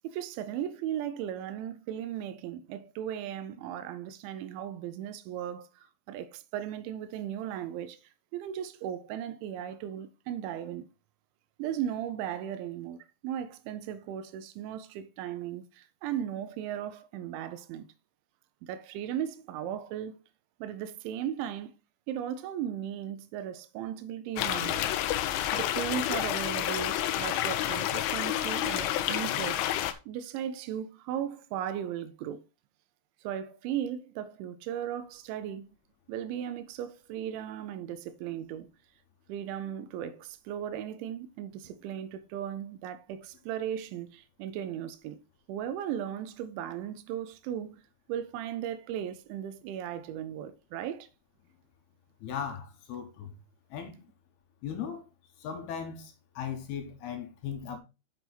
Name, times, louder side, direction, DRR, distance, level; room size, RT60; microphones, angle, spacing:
voice 1, 0.0-8.0 8.3-10.9 11.6-17.9 18.6-20.2 20.6-21.7 22.1-24.9 25.5-29.7 30.1-32.4 33.2-35.8 36.1-38.7 39.3-45.2 45.5-47.8 48.1-51.1, right 10 dB, 85° right, 2.9 m, -36 dB
sound 1, 24.4-29.9, left 12 dB, 90° left, 3.2 m, -29 dB
voice 2, 52.2-53.3 53.7-54.0 54.6-55.0 55.4-57.8, left 8 dB, 70° left, 2.8 m, -37 dB
7.9 x 5.8 x 4.1 m
omnidirectional pair, 5.4 m